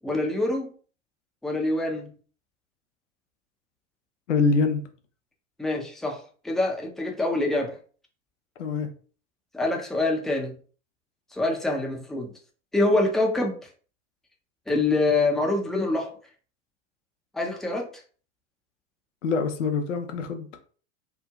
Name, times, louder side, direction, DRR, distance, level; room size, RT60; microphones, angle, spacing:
voice 1, 0.0-0.7 1.4-2.1 5.6-6.2 6.4-7.7 9.5-10.5 11.3-12.3 12.7-13.6 14.7-16.1 17.3-17.9, left 2 dB, ahead, 1 dB, 0.6 m, -25 dB
voice 2, 4.3-4.8 8.6-8.9 19.2-20.5, left 4 dB, 80° left, 7 dB, 0.6 m, -24 dB
2.9 x 2.5 x 2.3 m, 0.41 s
figure-of-eight pair, 80°, 36 cm